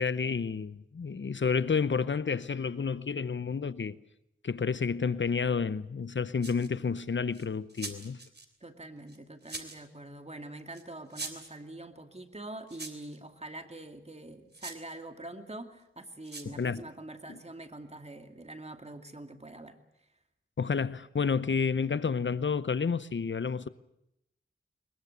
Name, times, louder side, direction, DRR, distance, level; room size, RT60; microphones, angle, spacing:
voice 1, 0.0-4.0 4.4-8.2 16.5-16.9 20.6-23.7, left 5 dB, 65° left, 0.8 m, -30 dB
sound 1, 6.4-6.8 7.3-8.5 9.1-9.9 10.7-10.8 11.1-11.5 12.7-13.2 14.5-14.8 16.2-16.5, right 3 dB, 55° right, 3.2 m, -42 dB
voice 2, 8.6-19.8, right 2 dB, 30° right, 2.6 m, -45 dB
22.0 x 22.0 x 8.1 m
wide cardioid pair, 50°, 21 cm